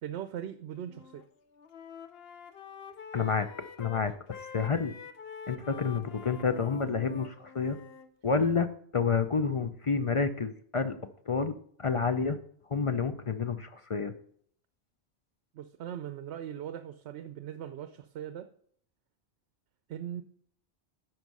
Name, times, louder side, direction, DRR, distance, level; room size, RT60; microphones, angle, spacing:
voice 1, 0.0-1.2 15.5-18.5 19.9-20.2, right 10 dB, 80° right, 11 dB, 0.8 m, -40 dB
Wind instrument woodwind instrument, 0.8-1.3 1.5-8.1, left 6 dB, 65° left, 0.9 m, -46 dB
voice 2, 3.1-3.5 3.8-4.9 5.5-7.8 8.2-8.7 8.9-11.0 11.3-12.4 12.7-14.1, left 5 dB, 45° left, 9 dB, 0.4 m, -29 dB
11.0 x 4.6 x 5.3 m, 0.62 s
omnidirectional pair, 1.1 m